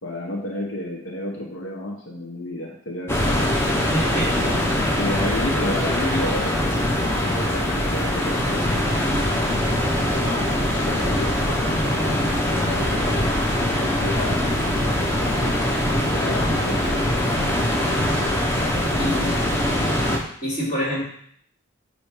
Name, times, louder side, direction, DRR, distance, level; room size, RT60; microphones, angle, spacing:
voice 1, 0.0-3.8 4.9-6.9 7.2-8.9 10.1-10.4 10.7-13.3 13.6-14.4 16.1-17.1 17.4-17.7 18.9-19.7, left 1 dB, 90° left, -1 dB, 1.1 m, -32 dB
sound 1, 3.1-20.2, left 1 dB, 10° left, 0.8 m, -22 dB
voice 2, 3.9-4.3 19.0-19.1 20.4-21.1, equal, 35° left, -5 dB, 2.7 m, -25 dB
8.5 x 3.0 x 4.9 m, 0.64 s
head